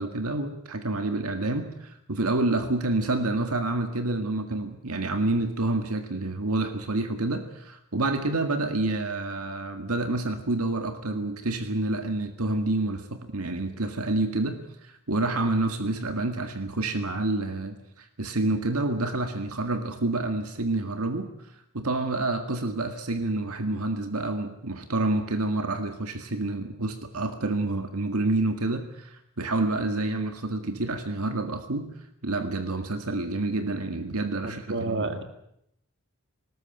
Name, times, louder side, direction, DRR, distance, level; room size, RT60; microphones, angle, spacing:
voice 1, 0.0-21.3 21.7-31.9 32.2-35.2, right 2 dB, 80° right, 7 dB, 1.9 m, -28 dB
voice 2, 34.4-35.2, right 2 dB, 55° right, 8 dB, 2.3 m, -30 dB
19.5 x 19.5 x 9.0 m, 0.77 s
head